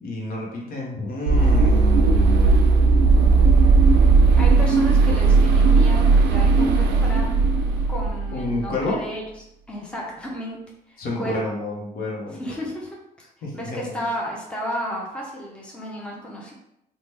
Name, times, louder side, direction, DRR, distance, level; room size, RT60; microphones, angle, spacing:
voice 1, 0.0-2.5 8.3-9.0 11.0-12.4 13.4-14.0, left 2 dB, 60° left, -2 dB, 0.9 m, -29 dB
sound 1, 1.3-8.7, right 4 dB, 80° right, 0.4 m, -16 dB
voice 2, 4.4-7.4 7.9-9.2 9.7-10.6 10.9-11.4 12.4-12.9 13.5-16.5, equal, 5° left, -2 dB, 0.6 m, -32 dB
2.8 x 2.1 x 3.3 m, 0.82 s
cardioid pair, 110°, 17 cm